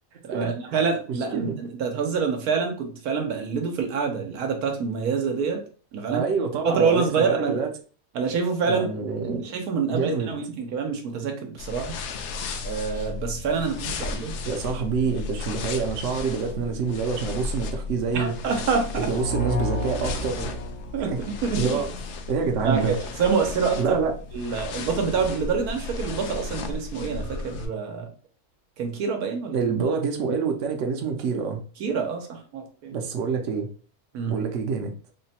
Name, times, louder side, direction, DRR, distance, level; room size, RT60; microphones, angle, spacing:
voice 1, 0.2-5.6 5.9-6.3 6.6-7.6 8.1-8.9 9.2-12.0 12.6-14.4 18.1-19.2 20.9-21.8 22.6-24.0 24.3-28.1 28.8-29.6 31.8-32.9 34.1-34.5, right 5 dB, 80° right, 1.2 m, -26 dB
voice 2, 6.1-7.7 8.6-9.4 9.9-10.3 14.5-18.4 19.0-20.5 21.0-21.2 21.6-21.9 22.3-22.9 23.8-24.1 29.5-31.6 32.9-33.7 34.2-34.9, right 5 dB, 60° right, 0.9 m, -26 dB
sound 1, 11.6-27.7, left 4 dB, 65° left, 0.7 m, -34 dB
sound 2, 19.1-21.9, left 1 dB, 90° left, 1.2 m, -31 dB
3.8 x 2.2 x 4.2 m
omnidirectional pair, 1.6 m